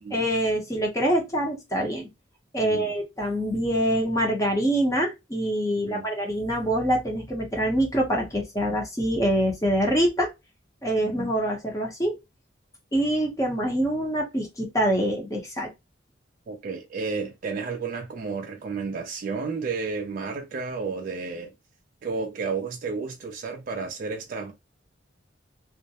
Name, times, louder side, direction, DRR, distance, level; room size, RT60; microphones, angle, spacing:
voice 1, 0.1-2.1 2.5-10.3 10.8-12.2 12.9-15.7, right 1 dB, 15° left, 0.6 m, -25 dB
voice 2, 2.6-2.9 5.8-6.1 11.0-11.2 16.5-21.5 22.0-24.5, right 4 dB, 45° right, 0.3 m, -32 dB
2.3 x 2.0 x 2.7 m
head